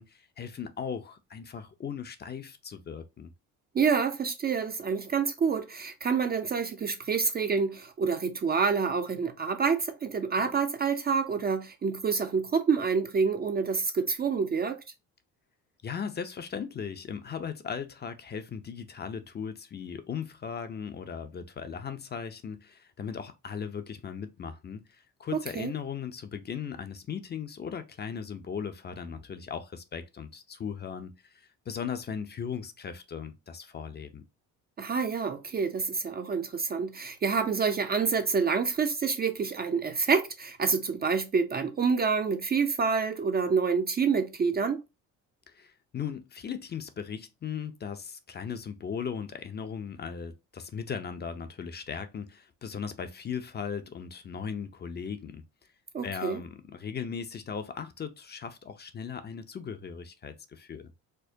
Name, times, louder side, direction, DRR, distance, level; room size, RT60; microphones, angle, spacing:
voice 1, 0.0-3.3 15.8-34.2 45.5-55.4 56.0-60.9, left 7 dB, 30° left, 0.5 m, -38 dB
voice 2, 3.7-14.8 25.6-25.7 34.8-44.8 55.9-56.4, right 5 dB, 30° right, 0.4 m, -27 dB
4.3 x 2.1 x 2.6 m
cardioid pair, 90°, 35 cm